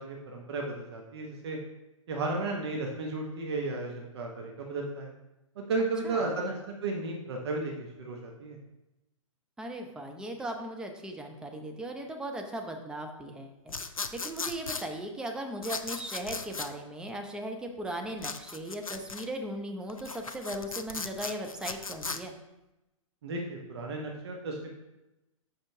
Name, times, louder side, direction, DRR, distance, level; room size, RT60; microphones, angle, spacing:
voice 1, 0.0-1.6 2.1-5.1 5.6-8.6 23.2-24.7, right 3 dB, 50° right, 1 dB, 0.9 m, -34 dB
voice 2, 9.6-13.8 14.1-22.4, right 1 dB, 5° right, 3 dB, 0.5 m, -38 dB
sound 1, 13.7-14.8 15.6-16.7 18.2-19.3 19.9-22.2, left 4 dB, 80° left, 0.5 m, -37 dB
6.0 x 5.1 x 3.5 m, 0.96 s
figure-of-eight pair, 110°, 17 cm